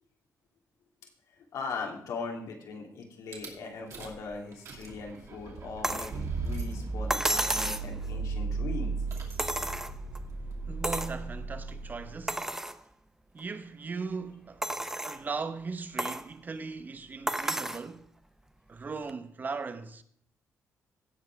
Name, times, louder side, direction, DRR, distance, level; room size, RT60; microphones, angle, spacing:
voice 1, 1.3-9.0, left 4 dB, 80° left, 2.9 m, -39 dB
Rattle / Car / Engine starting, 3.3-3.5 3.9-4.2 4.5-12.3, right 4 dB, 60° right, 2.7 m, -36 dB
sound 1, 5.8-6.2 7.1-7.9 9.4-10.2 10.8-11.2 11.7-11.8 12.3-12.8 13.4-13.5 14.6-15.2 16.0-16.3 17.3-17.9 19.1-19.2, right 1 dB, 10° right, 0.6 m, -31 dB
voice 2, 10.7-12.6 13.3-14.6 15.0-18.1 18.7-20.0, right 4 dB, 30° right, 0.9 m, -38 dB
16.5 x 5.7 x 4.7 m
cardioid pair, 125°, 6 cm